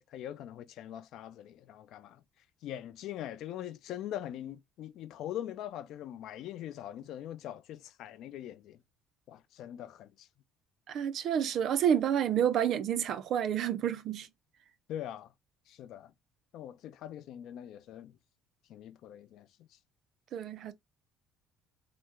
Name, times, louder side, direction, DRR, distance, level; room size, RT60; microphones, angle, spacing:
voice 1, 0.0-2.2 2.6-8.8 9.3-10.3 14.9-15.3 15.7-16.1 16.5-18.1 18.7-19.5, left 11 dB, 65° left, 0.3 m, -42 dB
voice 2, 10.9-14.3 20.3-20.7, right 9 dB, 50° right, 0.4 m, -29 dB
3.3 x 2.0 x 2.9 m
cardioid pair, 135°, 0 cm